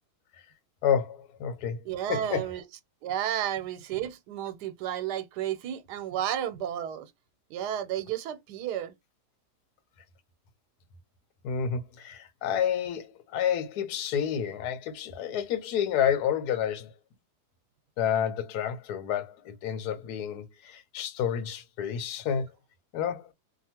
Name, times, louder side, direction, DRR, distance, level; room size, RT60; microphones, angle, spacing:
voice 1, 0.8-1.8 2.1-2.5 11.4-16.9 18.0-22.5 22.9-23.3, left 8 dB, 80° left, 1.1 m, -29 dB
voice 2, 1.8-2.6 3.0-7.1 7.5-8.9, right 10 dB, 85° right, 1.2 m, -32 dB
2.8 x 2.4 x 2.8 m
omnidirectional pair, 1.7 m